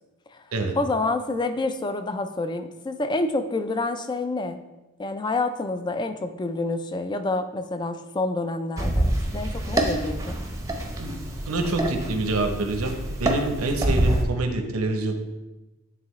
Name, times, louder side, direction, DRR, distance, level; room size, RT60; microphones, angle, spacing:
voice 1, 0.8-4.6 5.0-10.4, left 2 dB, 20° left, 9 dB, 0.3 m, -28 dB
sound 1, 8.8-14.2, right 1 dB, 15° right, 0.7 m, -26 dB
voice 2, 11.5-15.1, right 2 dB, 80° right, 5 dB, 0.8 m, -26 dB
8.8 x 3.8 x 3.1 m, 1.1 s
head